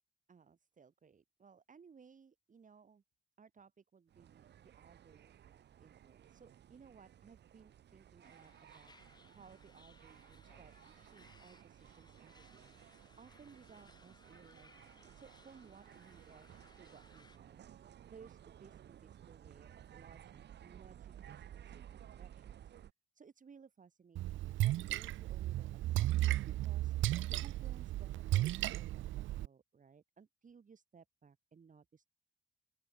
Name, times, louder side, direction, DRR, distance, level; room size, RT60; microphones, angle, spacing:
voice 1, 0.3-3.0 3.4-12.7 13.2-14.9 15.1-22.7 23.1-26.1 26.5-32.1, right 6 dB, 40° right, 5.7 m, -61 dB
sound 1, 4.1-22.9, right 10 dB, 60° right, 1.2 m, -57 dB
sound 2, 8.2-17.4, left 3 dB, 20° left, 3.6 m, -65 dB
Splash splatter, 24.2-29.5, right 15 dB, 75° right, 0.6 m, -34 dB
open air
cardioid pair, 90°, 20 cm